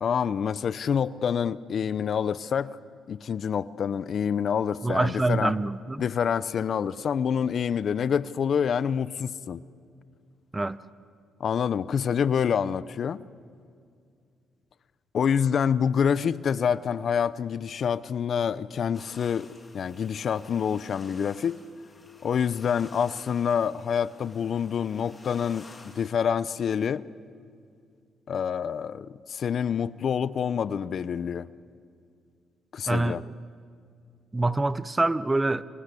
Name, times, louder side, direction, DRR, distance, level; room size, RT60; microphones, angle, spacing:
voice 1, 0.0-2.8 3.1-5.5 6.0-9.6 11.4-13.2 15.1-19.5 19.7-21.6 22.2-25.6 25.9-27.0 28.3-31.5 32.7-33.2, left 7 dB, 55° left, 0.7 m, -27 dB
voice 2, 4.8-6.0 10.5-10.8 32.9-33.2 34.3-35.6, right 2 dB, 15° right, 0.8 m, -25 dB
sound 1, 18.9-26.1, left 3 dB, 25° left, 3.2 m, -52 dB
27.0 x 24.5 x 8.4 m
cardioid pair, 90°, 0 cm